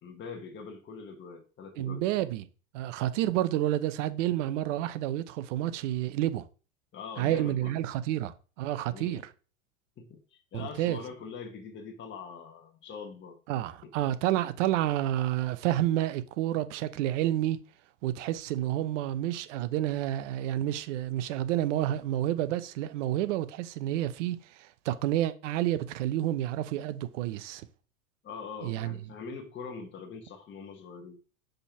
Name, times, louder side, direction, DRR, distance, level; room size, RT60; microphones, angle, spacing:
voice 1, 0.0-2.3 3.1-3.3 6.9-7.7 8.9-9.2 10.0-13.4 13.8-13.9 28.2-31.2, left 5 dB, 30° left, 1.6 m, -43 dB
voice 2, 1.8-2.5 2.7-6.4 7.2-9.2 10.5-11.0 13.5-17.6 18.0-27.7 28.6-29.0, right 13 dB, 65° right, 0.8 m, -29 dB
5.3 x 4.3 x 5.9 m
hypercardioid pair, 110°, 40 cm